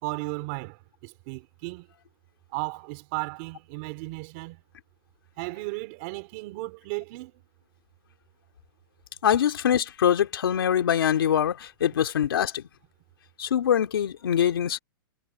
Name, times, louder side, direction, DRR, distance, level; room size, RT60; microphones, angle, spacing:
voice 1, 0.0-1.9 2.5-4.6 5.4-7.3, right 26 dB, 35° right, 3.8 m, -35 dB
voice 2, 9.2-12.6 13.4-14.8, left 9 dB, 85° left, 3.0 m, -23 dB
hypercardioid pair, 170°, 12 cm